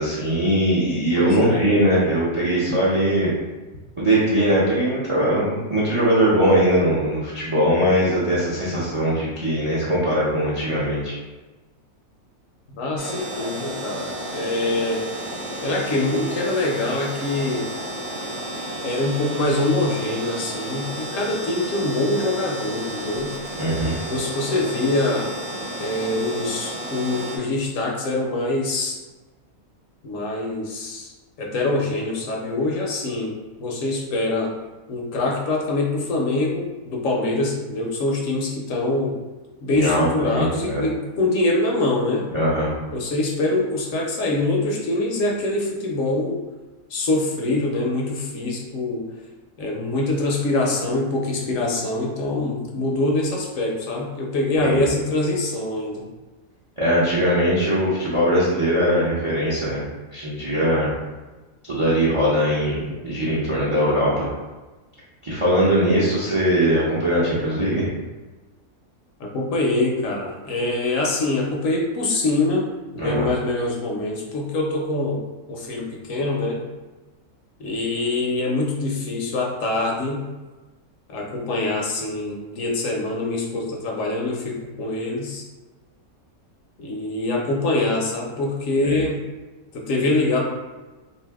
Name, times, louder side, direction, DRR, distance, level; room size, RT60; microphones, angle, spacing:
voice 1, 0.0-3.3 4.0-11.2 23.6-24.0 39.7-40.9 42.3-42.7 54.6-54.9 56.8-59.8 60.1-60.9 61.7-64.3 65.2-67.9 73.0-73.3 88.8-89.0, equal, 40° right, -7 dB, 0.4 m, -21 dB
voice 2, 1.2-1.6 12.8-15.0 15.6-17.6 18.8-23.3 24.1-25.3 25.8-29.0 30.0-31.1 31.4-33.3 33.6-34.5 34.9-39.2 39.6-42.3 42.9-46.4 46.9-49.0 49.6-56.1 69.2-72.6 72.9-75.2 75.5-76.6 77.6-80.3 81.1-85.5 86.8-89.2 89.7-90.4, left 2 dB, 70° left, -1 dB, 0.9 m, -24 dB
sound 1, 13.0-27.4, right 1 dB, 55° right, 0.9 m, -32 dB
2.7 x 2.6 x 3.4 m, 1.2 s
omnidirectional pair, 1.6 m